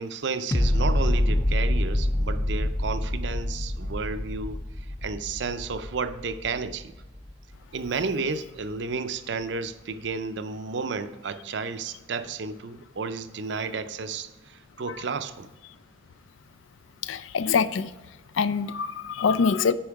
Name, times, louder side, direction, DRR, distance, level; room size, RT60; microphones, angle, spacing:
voice 1, 0.0-6.9 7.7-15.5, right 4 dB, 65° right, 11 dB, 0.5 m, -32 dB
sound 1, 0.5-7.6 8.0-8.1, left 1 dB, 15° left, 0.4 m, -26 dB
voice 2, 17.0-17.9 18.3-19.7, left 5 dB, 85° left, 15 dB, 0.4 m, -24 dB
8.6 x 5.4 x 4.7 m, 1.2 s
head